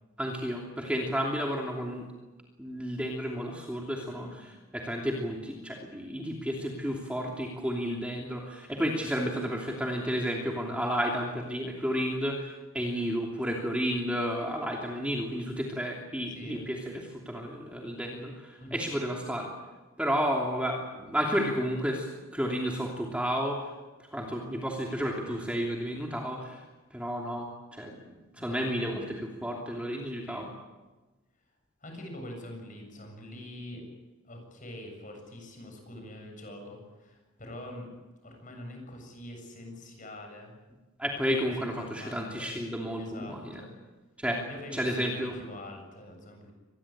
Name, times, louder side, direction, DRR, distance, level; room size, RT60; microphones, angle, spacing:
voice 1, 0.2-2.1 2.6-19.5 20.0-22.1 22.3-23.6 24.1-26.6 26.9-28.0 28.4-30.5 41.0-43.6 44.2-44.4 44.7-45.3, equal, 5° right, -1 dB, 2.9 m, -32 dB
voice 2, 4.1-4.4 16.4-16.7 18.6-18.9 28.4-28.8 30.3-30.5 31.8-33.8 34.2-37.9 38.2-40.5 41.6-42.6 43.0-43.7 44.5-46.5, left 1 dB, 35° left, 3 dB, 7.5 m, -44 dB
25.0 x 20.5 x 8.8 m, 1.2 s
head